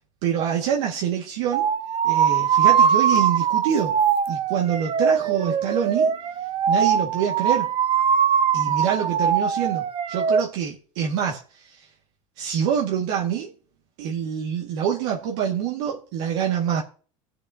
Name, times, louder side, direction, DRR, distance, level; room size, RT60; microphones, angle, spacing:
voice 1, 0.2-1.7 2.0-4.0 4.3-6.2 6.7-7.7 8.5-11.4 11.7-11.8 12.4-13.5 14.0-16.8, right 8 dB, 75° right, 2.0 m, -26 dB
sound 1, 1.5-10.4, right 7 dB, 35° right, 0.8 m, -21 dB
20.0 x 6.8 x 2.8 m
supercardioid pair, 115°, 16 cm